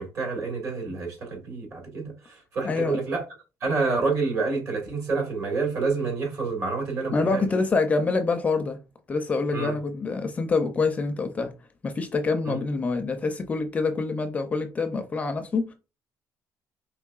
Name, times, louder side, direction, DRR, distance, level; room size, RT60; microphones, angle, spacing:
voice 1, 0.0-3.2 3.6-7.4 9.5-9.7 12.4-12.6, right 4 dB, 55° right, 1.9 m, -28 dB
voice 2, 2.6-3.0 7.1-8.8 9.1-11.5 11.8-15.7, left 4 dB, 25° left, 0.4 m, -26 dB
4.4 x 3.2 x 2.3 m
cardioid pair, 170°, 6 cm